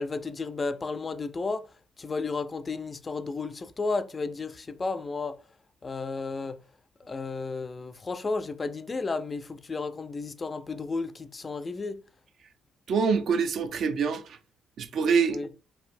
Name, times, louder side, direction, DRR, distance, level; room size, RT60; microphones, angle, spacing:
voice 1, 0.0-1.7 2.0-5.4 5.8-6.6 7.0-12.0 15.3-15.5, left 3 dB, 30° left, 0.3 m, -33 dB
voice 2, 12.9-14.4 14.8-15.4, right 5 dB, 65° right, 0.4 m, -25 dB
3.2 x 2.6 x 2.5 m
cardioid pair, 90°, 0 cm